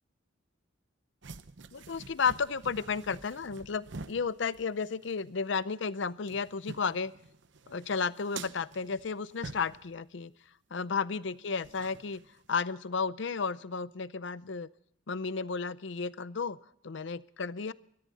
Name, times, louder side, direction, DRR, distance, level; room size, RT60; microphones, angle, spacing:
sound 1, 1.2-5.3 5.5-5.6 6.0-10.0 11.6-12.6, right 4 dB, 60° right, 0.8 m, -48 dB
voice 1, 1.7-7.1 7.7-10.3 10.7-12.2 12.5-14.7 15.1-16.6 16.8-17.7, left 5 dB, 60° left, 17 dB, 0.6 m, -33 dB
22.0 x 14.0 x 4.2 m, 0.69 s
head